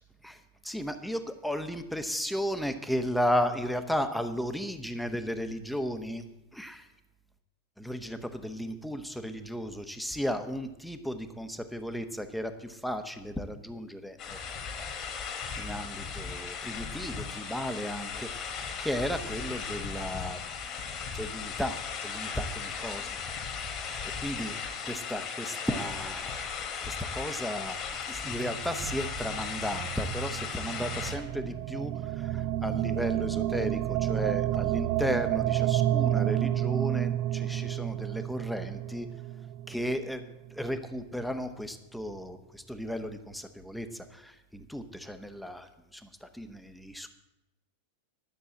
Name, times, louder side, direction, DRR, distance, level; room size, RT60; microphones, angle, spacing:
voice 1, 0.2-6.2 6.5-6.9 7.8-14.9 15.5-20.4 21.1-23.2 23.7-24.6 24.8-26.4 26.8-39.1 39.7-40.2 40.5-47.1, equal, ahead, 8 dB, 1.0 m, -35 dB
sound 1, 14.2-31.2, left 6 dB, 30° left, 1.9 m, -37 dB
sound 2, 28.2-40.5, right 13 dB, 40° right, 0.4 m, -31 dB
11.5 x 6.8 x 7.5 m, 0.93 s
figure-of-eight pair, 90°, 0 cm